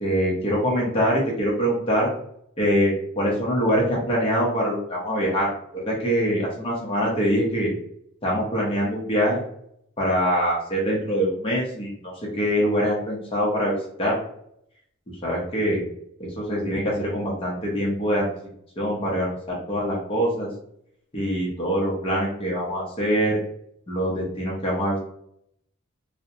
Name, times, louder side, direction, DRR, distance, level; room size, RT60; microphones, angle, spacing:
voice 1, 0.0-2.1 2.6-7.7 8.2-9.4 10.0-11.9 12.3-14.2 15.1-15.8 16.2-18.3 18.8-19.4 19.7-20.5 21.1-23.4 23.9-25.0, equal, 25° left, -4 dB, 0.6 m, -24 dB
2.6 x 2.1 x 2.6 m, 0.72 s
head